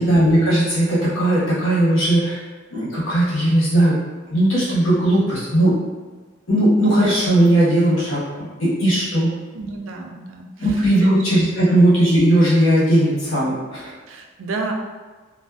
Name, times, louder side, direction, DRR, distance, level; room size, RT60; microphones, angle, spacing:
voice 1, 0.0-2.4 2.7-3.9 4.3-5.8 6.5-9.3 10.6-13.9, right 1 dB, 90° left, -8 dB, 1.0 m, -17 dB
voice 2, 9.5-10.5 11.0-11.1 11.6-11.8 14.1-14.7, right 3 dB, 80° right, 2 dB, 0.4 m, -31 dB
2.5 x 2.2 x 2.3 m, 1.3 s
head